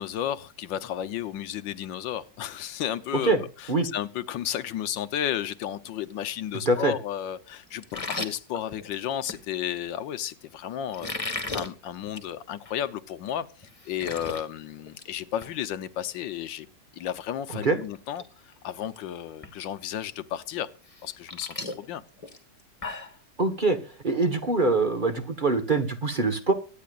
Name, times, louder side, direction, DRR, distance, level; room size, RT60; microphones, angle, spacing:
voice 1, 0.0-16.7 16.9-20.7 21.0-22.0, left 10 dB, 85° left, 1.6 m, -33 dB
sound 1, 7.8-9.4 10.9-11.7 12.1-12.3 12.7-12.8 13.3-13.4 13.6-14.4 14.8-15.1 15.4-15.5 17.4-17.5 17.9-18.2 18.5-19.0 19.4-19.5 20.9-23.2, left 2 dB, 20° left, 1.5 m, -35 dB
voice 2, 23.4-23.8 24.0-26.5, right 3 dB, 30° right, 1.2 m, -23 dB
24.0 x 9.5 x 2.4 m
omnidirectional pair, 2.0 m